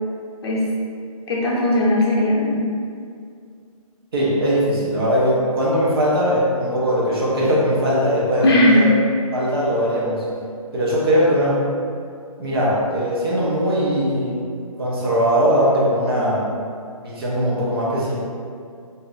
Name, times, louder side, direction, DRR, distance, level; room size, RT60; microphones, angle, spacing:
voice 1, 1.3-2.6 8.4-8.9, left 1 dB, 45° left, -5 dB, 0.7 m, -17 dB
voice 2, 4.1-8.9 9.3-10.3 10.7-11.7 12.4-14.4 14.8-16.5 17.0-18.2, equal, 40° right, -6 dB, 0.7 m, -20 dB
2.6 x 2.4 x 3.9 m, 2.3 s
hypercardioid pair, 170°, 19 cm